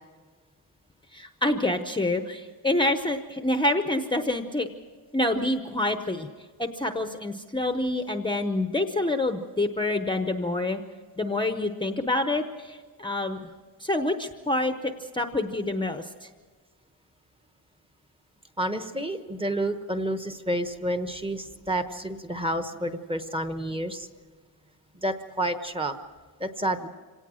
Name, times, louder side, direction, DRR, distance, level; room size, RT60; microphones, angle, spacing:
voice 1, 1.1-4.7 5.1-6.3 6.6-10.8 11.2-13.4 13.8-16.3, left 2 dB, 10° left, 6 dB, 0.7 m, -27 dB
voice 2, 18.6-24.1 25.0-25.9 26.4-26.9, right 1 dB, 15° right, 7 dB, 1.0 m, -29 dB
25.5 x 18.0 x 6.2 m, 1.4 s
wide cardioid pair, 165°, 40 cm